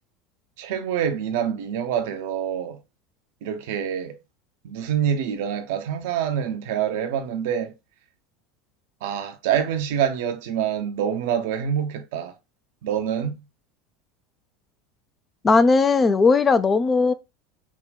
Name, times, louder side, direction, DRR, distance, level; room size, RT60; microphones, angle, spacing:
voice 1, 0.6-2.8 3.4-4.2 4.6-7.7 9.0-12.3 12.8-13.4, right 9 dB, 60° right, 0.5 m, -26 dB
voice 2, 15.4-17.1, left 4 dB, 20° left, 0.3 m, -17 dB
3.5 x 2.2 x 3.9 m
figure-of-eight pair, 75°, 0 cm